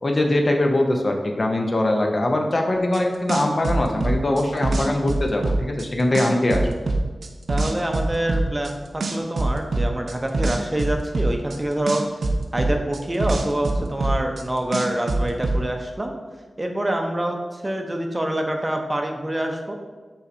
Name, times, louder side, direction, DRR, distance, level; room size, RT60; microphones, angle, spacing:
voice 1, 0.0-6.6, left 1 dB, 45° left, 2 dB, 0.5 m, -22 dB
sound 1, 2.9-3.0 3.3-5.9 6.1-8.7 9.0-11.6 11.9-14.4 14.7-15.6, right 2 dB, 75° right, 0.4 m, -23 dB
voice 2, 7.5-12.0 12.5-16.2 16.6-19.8, right 1 dB, 25° right, 3 dB, 0.5 m, -26 dB
5.4 x 3.2 x 2.6 m, 1.4 s
cardioid pair, 50°, 0 cm